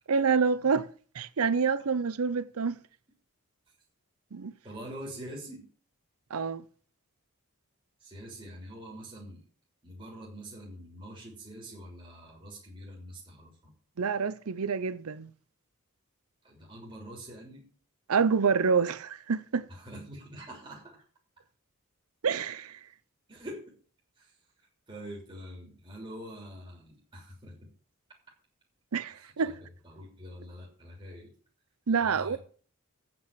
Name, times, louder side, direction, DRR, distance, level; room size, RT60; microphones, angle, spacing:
voice 1, 0.1-0.9 1.1-2.8 4.3-4.5 6.3-6.6 14.0-15.3 18.1-19.7 22.2-22.8 28.9-29.5 31.9-32.4, right 5 dB, 75° right, 0.6 m, -27 dB
voice 2, 4.6-5.7 8.0-9.5 9.8-13.7 16.4-17.7 19.7-21.0 23.3-23.7 24.2-27.7 29.1-29.6 29.8-31.3 32.0-32.4, right 1 dB, 20° right, 3.2 m, -45 dB
9.1 x 6.0 x 8.4 m
head